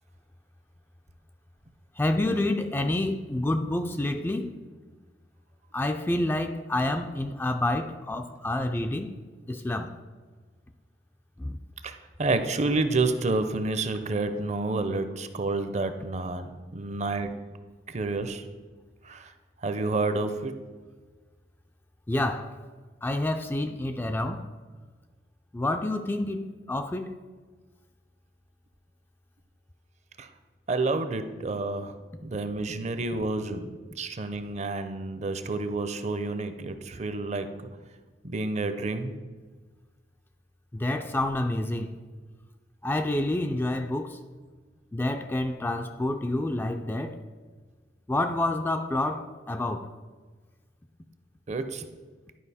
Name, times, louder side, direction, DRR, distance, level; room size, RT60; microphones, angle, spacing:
voice 1, 2.0-4.5 5.7-9.2 9.5-9.9 11.4-11.6 22.1-22.5 23.0-24.5 25.5-27.2 40.7-42.0 42.8-44.2 44.9-47.2 48.1-49.9, left 1 dB, 10° left, 0.3 m, -28 dB
voice 2, 11.8-17.3 17.9-18.4 19.0-19.3 19.6-20.6 30.2-30.3 30.7-31.9 32.2-33.7 34.0-37.5 38.2-39.1 51.5-51.8, right 3 dB, 40° right, 0.6 m, -29 dB
11.0 x 4.9 x 4.1 m
head